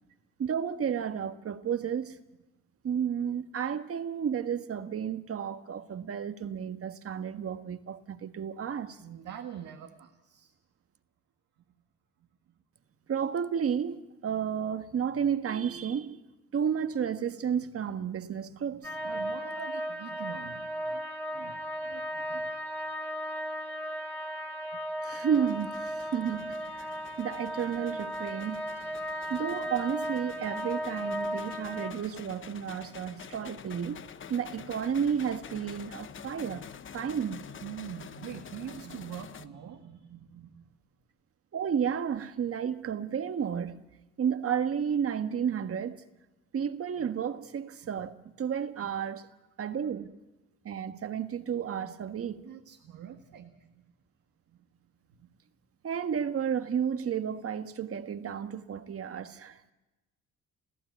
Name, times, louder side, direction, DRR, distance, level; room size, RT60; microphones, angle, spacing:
voice 1, 0.4-2.2 2.8-9.0 13.1-16.2 16.5-18.9 25.0-28.6 29.3-34.0 34.3-36.7 36.9-37.4 41.5-43.8 44.2-46.0 46.5-49.3 49.6-50.1 50.6-52.4 55.8-59.7, right 8 dB, 50° right, 1.4 m, -32 dB
voice 2, 9.0-10.5 18.7-21.1 21.3-22.5 23.6-24.0 37.6-40.7 47.8-47.9 48.7-48.9 49.6-49.8 52.0-53.9 54.5-54.6 55.1-55.3, right 9 dB, 75° right, 1.7 m, -45 dB
sound 1, 18.8-31.9, equal, 5° left, 2.4 m, -36 dB
sound 2, 25.3-39.5, left 7 dB, 40° left, 0.9 m, -48 dB
28.0 x 15.0 x 8.3 m
cardioid pair, 90°, 30 cm